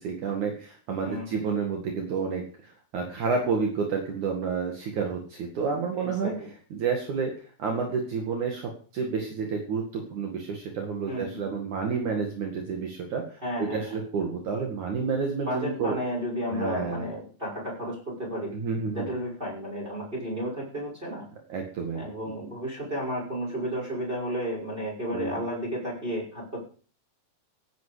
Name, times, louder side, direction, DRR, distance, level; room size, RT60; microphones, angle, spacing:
voice 1, 0.0-6.3 6.7-7.3 7.6-16.0 16.5-17.1 18.5-19.1 21.5-22.0 25.1-25.4, right 5 dB, 60° right, 2 dB, 3.4 m, -30 dB
voice 2, 1.0-1.4 6.0-6.5 11.1-11.5 13.4-13.8 15.4-18.5 18.9-21.2 21.9-26.6, equal, 15° right, -3 dB, 6.2 m, -32 dB
17.5 x 10.5 x 5.1 m, 0.41 s
omnidirectional pair, 4.1 m